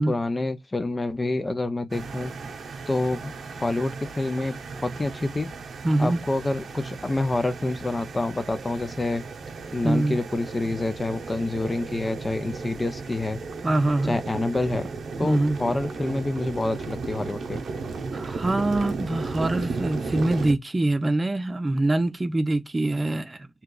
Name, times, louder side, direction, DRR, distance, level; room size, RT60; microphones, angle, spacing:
voice 1, 0.0-2.3 2.9-5.5 6.0-9.2 9.7-13.4 14.1-14.9 15.2-17.6, left 2 dB, 35° left, 0.6 m, -27 dB
sound 1, 1.9-20.5, right 4 dB, 85° right, 0.6 m, -35 dB
voice 2, 5.8-6.2 9.8-10.2 13.6-14.2 15.2-15.6 18.1-23.5, right 2 dB, 35° right, 0.6 m, -24 dB
2.9 x 2.2 x 3.7 m
cardioid pair, 60°, 0 cm